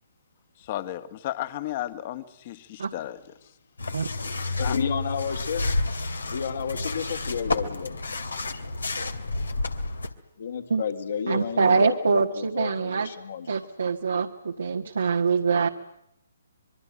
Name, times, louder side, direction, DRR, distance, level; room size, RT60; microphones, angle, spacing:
voice 1, 0.6-3.2 4.6-4.8, left 13 dB, 40° left, 2.0 m, -34 dB
sound 1, 3.8-10.1, left 2 dB, 85° left, 2.6 m, -30 dB
voice 2, 4.6-5.6 6.3-8.2 8.5-8.6 10.4-13.5, left 7 dB, 65° left, 3.4 m, -31 dB
voice 3, 11.3-13.1 13.5-15.7, right 5 dB, 75° right, 1.6 m, -24 dB
25.5 x 23.0 x 9.0 m
figure-of-eight pair, 140°, 0 cm